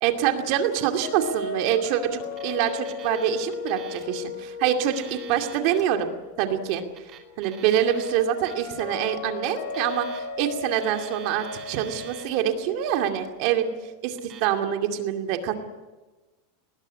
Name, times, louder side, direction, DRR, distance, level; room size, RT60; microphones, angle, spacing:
voice 1, 0.0-6.1 6.4-6.8 7.4-13.7 14.0-15.5, right 10 dB, 40° right, 5 dB, 2.4 m, -25 dB
sound 1, 1.0-13.9, left 5 dB, 50° left, 4.3 m, -37 dB
Alarm, 2.2-3.2 3.5-4.1 4.7-5.8 6.6-8.1 8.4-8.8 9.6-10.5 10.7-12.3 12.8-13.3 14.1-14.5, right 10 dB, 25° right, 2.8 m, -46 dB
20.0 x 19.5 x 9.9 m, 1.2 s
supercardioid pair, 175°, 0 cm